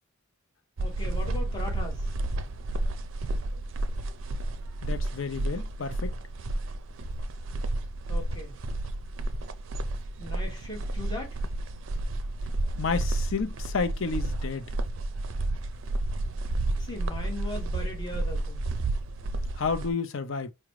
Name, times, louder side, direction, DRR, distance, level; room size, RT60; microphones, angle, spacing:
voice 1, 0.8-2.1 8.1-8.6 10.2-11.4 16.8-18.6, left 2 dB, 20° left, 1.3 m, -39 dB
sound 1, 0.8-19.9, right 2 dB, 60° right, 0.4 m, -31 dB
voice 2, 4.8-6.2 12.8-14.7 19.6-20.5, left 5 dB, 65° left, 0.6 m, -31 dB
4.9 x 2.2 x 3.1 m
head